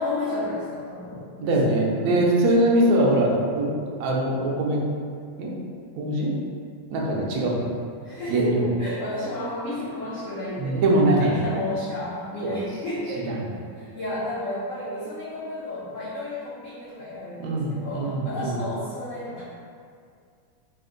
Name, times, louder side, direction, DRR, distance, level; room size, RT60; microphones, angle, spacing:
voice 1, 0.0-1.5 2.0-2.3 8.0-10.8 11.2-13.4 13.8-19.4, left 1 dB, 70° left, -10 dB, 0.7 m, -32 dB
voice 2, 1.4-3.7 4.0-4.8 5.4-5.5 6.0-6.3 6.9-7.7 8.3-8.7 10.6-11.4 12.4-12.6 13.3-13.4 17.4-18.6, right 1 dB, 70° right, -2 dB, 0.9 m, -22 dB
4.3 x 2.1 x 3.7 m, 2.2 s
omnidirectional pair, 2.2 m